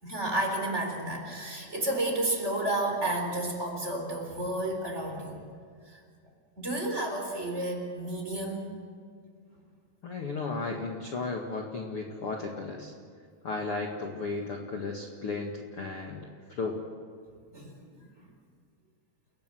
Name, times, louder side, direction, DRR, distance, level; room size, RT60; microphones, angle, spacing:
voice 1, 0.0-5.4 5.9-6.0 6.6-8.7 17.5-18.1, right 1 dB, 20° right, 1 dB, 4.1 m, -31 dB
voice 2, 10.0-12.9 13.4-16.8, left 3 dB, 45° left, 1 dB, 2.2 m, -34 dB
30.0 x 18.0 x 7.9 m, 2.1 s
omnidirectional pair, 4.4 m